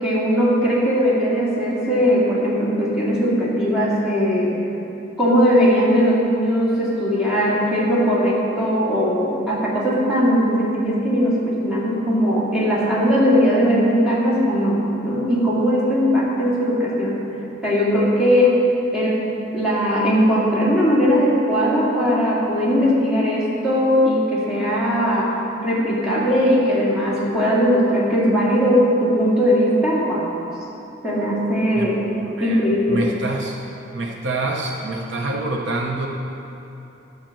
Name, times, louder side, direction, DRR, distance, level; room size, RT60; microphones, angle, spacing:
voice 1, 0.0-4.6 5.2-17.2 17.6-18.6 18.9-19.2 19.5-25.4 25.6-30.3 31.0-32.0 32.4-33.1, equal, 5° right, -8 dB, 2.1 m, -19 dB
voice 2, 32.2-33.6 33.9-36.1, right 2 dB, 60° right, 0 dB, 0.8 m, -26 dB
10.5 x 5.9 x 7.3 m, 2.9 s
head